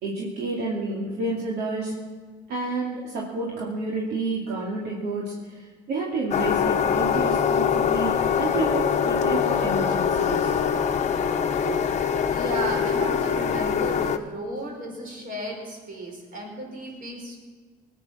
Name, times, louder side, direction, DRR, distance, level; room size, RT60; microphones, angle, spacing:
voice 1, 0.0-1.9 2.5-10.6, right 2 dB, 75° right, -3 dB, 2.7 m, -30 dB
sound 1, 6.3-14.2, left 7 dB, 45° left, 1.0 m, -23 dB
voice 2, 12.3-17.4, right 1 dB, 55° right, 0 dB, 5.4 m, -34 dB
19.5 x 9.9 x 6.4 m, 1.5 s
cardioid pair, 110°, 17 cm